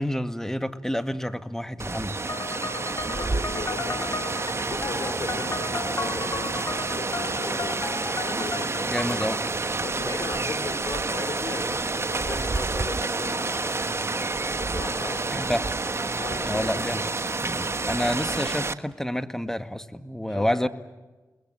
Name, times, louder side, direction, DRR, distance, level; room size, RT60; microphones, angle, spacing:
voice 1, 0.0-2.2 8.9-9.4 15.3-15.7 16.5-17.0 17.4-20.7, equal, 5° left, 9 dB, 1.9 m, -29 dB
Rain, 1.8-18.7, right 3 dB, 40° right, 1.4 m, -29 dB
sound 1, 2.3-9.5, left 3 dB, 50° left, 2.2 m, -35 dB
Bowed string instrument, 3.1-9.8, left 3 dB, 90° left, 3.2 m, -46 dB
voice 2, 3.1-13.6 14.6-15.5 16.1-16.8 20.3-20.4, left 3 dB, 70° left, 7 dB, 4.5 m, -38 dB
29.5 x 21.5 x 7.9 m, 1.2 s
cardioid pair, 45°, 7 cm